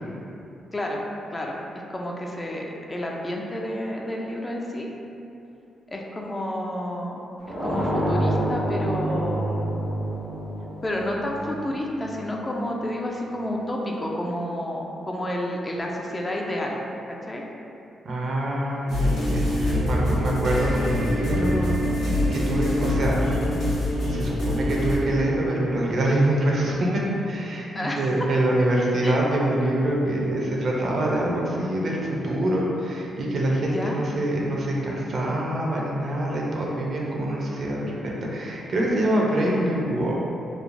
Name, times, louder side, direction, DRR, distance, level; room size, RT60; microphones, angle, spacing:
voice 1, 0.7-1.0 1.3-1.6 1.9-4.9 5.9-7.2 7.6-9.7 10.8-16.8 17.1-17.4 27.7-28.0 29.0-29.2 33.7-34.0, left 1 dB, 25° left, -1 dB, 0.4 m, -30 dB
sound 1, 7.4-12.2, right 1 dB, 90° right, 1.0 m, -27 dB
voice 2, 18.0-23.3 24.1-40.2, right 1 dB, 60° right, -3 dB, 0.5 m, -25 dB
sound 2, 18.9-25.0, left 1 dB, 80° left, 0.8 m, -24 dB
3.1 x 2.0 x 2.5 m, 2.8 s
supercardioid pair, 60°, 0 cm